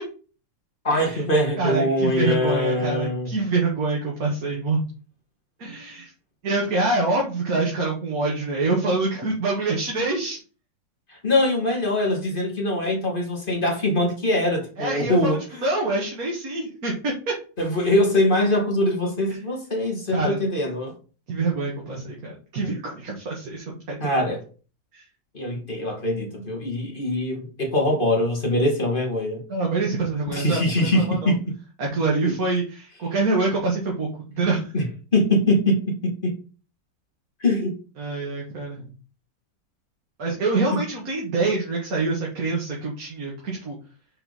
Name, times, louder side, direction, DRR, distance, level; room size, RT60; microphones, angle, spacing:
voice 1, 0.8-3.3 11.1-15.6 17.6-20.9 24.0-24.4 25.3-29.4 30.3-31.4 32.2-32.3 34.7-34.8 35.1-36.3 37.4-37.7 40.7-40.8, left 1 dB, 30° left, 2.6 m, -23 dB
voice 2, 1.6-4.8 5.6-6.1 6.4-10.4 14.8-17.3 19.3-19.4 20.1-20.4 21.3-24.1 24.9-25.0 29.5-31.3 31.8-34.1 34.4-34.7 38.0-38.9 40.2-43.8, right 3 dB, 65° right, 2.2 m, -25 dB
6.8 x 4.5 x 4.2 m
omnidirectional pair, 1.7 m